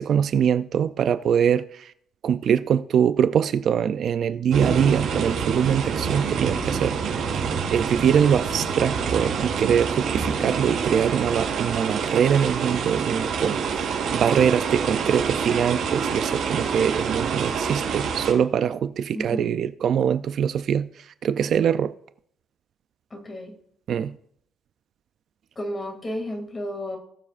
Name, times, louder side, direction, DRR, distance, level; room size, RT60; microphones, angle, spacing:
voice 1, 0.0-1.9 2.2-6.9 7.2-20.9 21.2-21.9 23.9-24.1, right 8 dB, 50° right, 0.3 m, -23 dB
sound 1, 4.5-18.3, right 6 dB, 70° right, 3.2 m, -27 dB
voice 2, 19.1-19.5 23.1-23.5 25.6-27.0, left 1 dB, 20° left, 2.3 m, -32 dB
19.0 x 7.3 x 2.5 m
cardioid pair, 145°, 0 cm